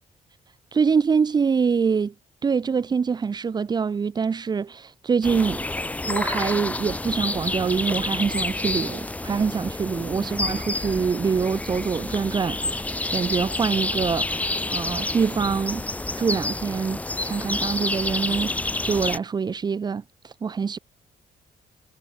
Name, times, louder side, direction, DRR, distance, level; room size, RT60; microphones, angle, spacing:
voice 1, 0.7-2.1 2.4-5.7 6.1-15.9 16.2-20.8, right 5 dB, 30° right, 2.3 m, -25 dB
sound 1, 5.2-19.2, left 2 dB, 10° left, 2.8 m, -29 dB
cardioid pair, 170°, 15 cm